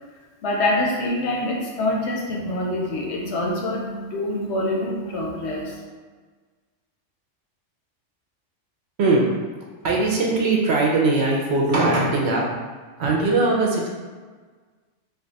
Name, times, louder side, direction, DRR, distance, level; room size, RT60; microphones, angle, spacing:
voice 1, 0.4-5.8, left 1 dB, 65° left, -1 dB, 0.8 m, -25 dB
voice 2, 9.8-12.4 13.0-13.9, right 3 dB, 65° right, -2 dB, 0.8 m, -20 dB
2.5 x 2.3 x 3.9 m, 1.4 s
omnidirectional pair, 1.3 m